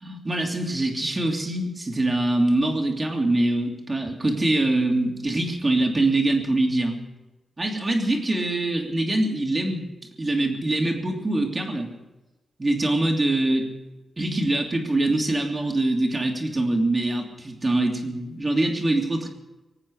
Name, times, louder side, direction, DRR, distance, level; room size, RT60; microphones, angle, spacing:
voice 1, 0.0-7.0 7.6-9.9 10.2-11.9 12.6-13.7 14.2-19.3, right 2 dB, 25° right, 1 dB, 2.9 m, -24 dB
24.0 x 8.8 x 6.4 m, 1.0 s
wide cardioid pair, 105°, 0 cm